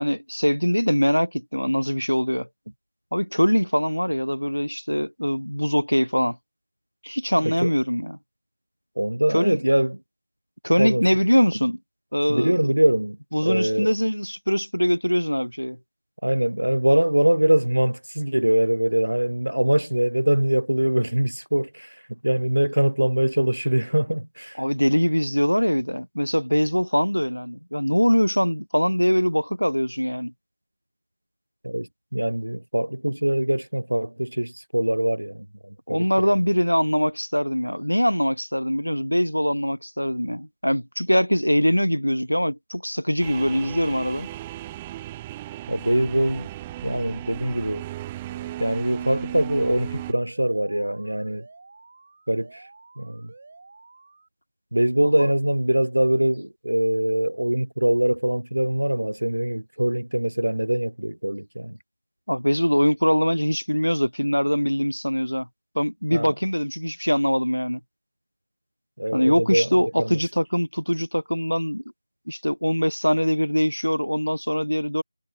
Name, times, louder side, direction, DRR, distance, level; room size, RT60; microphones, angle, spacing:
voice 1, 0.0-2.5 3.1-6.4 7.0-8.2 9.3-9.6 10.6-11.8 12.1-12.6 13.3-15.8 24.6-30.3 35.9-44.3 55.0-55.3 62.3-65.5 65.7-67.8 69.1-71.8 72.3-75.0, equal, 90° left, 1.2 m, -22 dB
voice 2, 9.0-10.0 10.8-11.0 12.3-13.2 13.4-13.9 16.2-22.0 22.2-24.6 31.6-36.4 45.7-46.5 46.8-47.9 48.6-51.4 52.3-52.7 53.0-53.3 54.7-61.8 66.1-66.3 69.0-69.7 70.0-70.2, right 1 dB, 80° right, 0.4 m, -23 dB
sound 1, 43.2-50.1, right 15 dB, 10° right, 0.4 m, -36 dB
Alarm, 48.3-54.3, right 3 dB, 35° right, 2.6 m, -50 dB
figure-of-eight pair, 165°, 0 cm